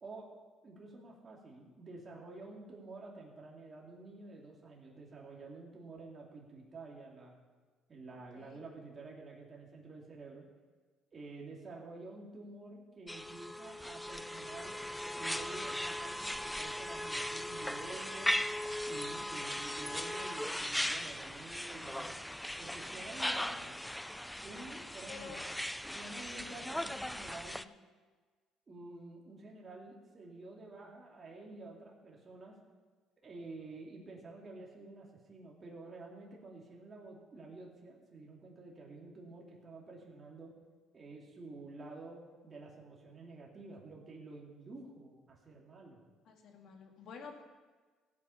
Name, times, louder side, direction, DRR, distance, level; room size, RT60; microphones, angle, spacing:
voice 1, 0.0-0.3 0.6-7.4 7.9-10.4 11.1-14.8 15.1-18.3 18.8-22.2 22.6-23.8 24.4-25.4 25.9-27.6 28.7-32.5 33.2-40.5 40.9-46.0, right 3 dB, 25° right, -2 dB, 2.6 m, -50 dB
voice 2, 8.1-8.6 25.1-25.4 26.2-26.5 46.3-47.4, left 6 dB, 55° left, 2 dB, 2.1 m, -50 dB
sound 1, 13.1-27.6, left 1 dB, 5° left, 0.3 m, -38 dB
16.5 x 8.3 x 5.7 m, 1.4 s
cardioid pair, 140°, 0 cm